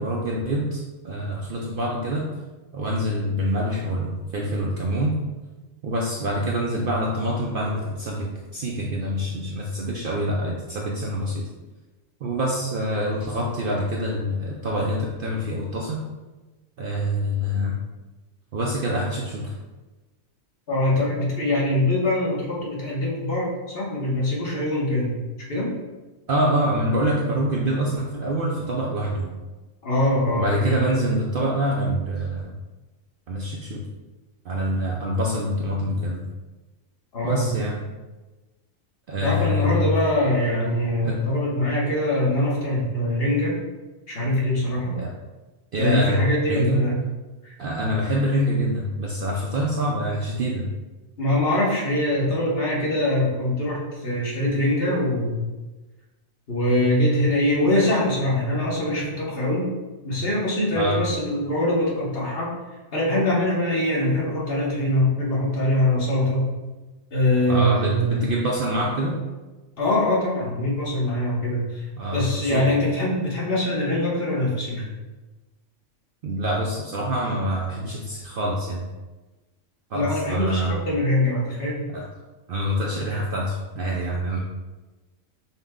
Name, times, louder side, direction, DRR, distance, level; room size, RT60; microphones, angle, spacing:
voice 1, 0.0-2.3 2.7-5.2 5.8-11.5 12.2-16.0 16.8-17.8 18.5-19.5 26.3-29.3 30.4-32.5 33.3-33.8 34.4-36.2 37.2-37.8 39.1-39.9 41.0-41.2 44.9-45.1 45.7-46.2 46.4-46.8 47.6-50.7 60.8-61.0 67.5-69.2 72.0-72.7 76.2-78.8 79.9-80.8 81.9-82.0 82.5-84.4, equal, 60° right, -2 dB, 0.6 m, -25 dB
voice 2, 20.7-25.1 25.5-25.7 29.8-30.8 37.1-37.5 39.2-43.6 44.1-45.0 45.8-46.9 47.4-47.5 51.2-55.5 56.5-59.7 60.0-62.5 62.9-66.5 67.1-68.2 69.8-74.9 79.9-81.9, left 1 dB, 50° left, -5 dB, 1.2 m, -23 dB
5.6 x 2.2 x 3.6 m, 1.2 s
omnidirectional pair, 1.3 m